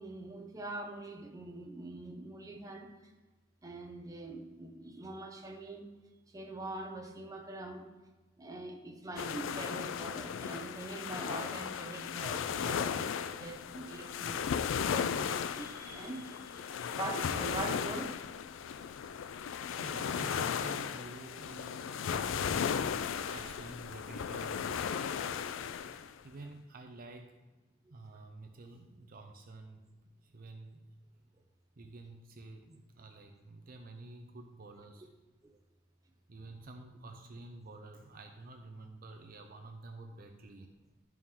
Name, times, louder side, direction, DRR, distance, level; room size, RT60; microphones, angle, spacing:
voice 1, 0.0-2.9 3.6-5.9 6.3-7.9 8.4-14.5 14.8-18.2 35.4-35.6, right 2 dB, 20° right, 2 dB, 0.8 m, -43 dB
sound 1, 9.2-26.1, left 7 dB, 75° left, 0.3 m, -36 dB
voice 2, 19.7-22.8 23.3-24.7 25.8-27.4 27.9-29.8 30.2-30.8 31.8-35.1 36.3-40.7, right 2 dB, 45° right, 4 dB, 0.6 m, -50 dB
11.0 x 4.6 x 3.7 m, 1.1 s
head